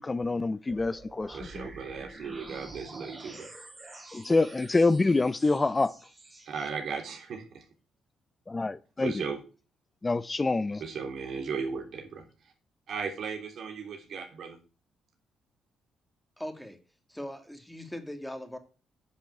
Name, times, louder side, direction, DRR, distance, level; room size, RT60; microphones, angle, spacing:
voice 1, 0.0-1.7 4.1-5.9 8.5-9.2 10.0-10.8, left 3 dB, 20° left, 0.6 m, -26 dB
sound 1, 0.7-6.7, right 2 dB, 25° right, 3.6 m, -48 dB
voice 2, 1.3-3.4 6.4-7.6 9.0-9.4 10.8-12.3 12.9-14.6, right 5 dB, 65° right, 3.3 m, -36 dB
voice 3, 16.4-16.8 17.1-18.6, left 1 dB, 5° left, 2.2 m, -40 dB
10.0 x 6.0 x 8.3 m
cardioid pair, 90°, 0 cm